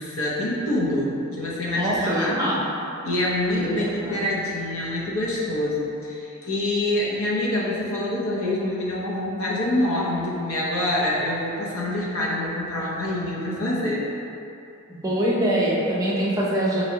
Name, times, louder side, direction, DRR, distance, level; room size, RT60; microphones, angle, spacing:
voice 1, 0.0-2.3 3.0-14.0, left 1 dB, 65° left, -5 dB, 0.7 m, -26 dB
voice 2, 1.7-2.6 3.6-4.2 14.9-16.8, right 1 dB, 15° right, -6 dB, 0.6 m, -24 dB
4.0 x 3.0 x 2.7 m, 2.7 s
head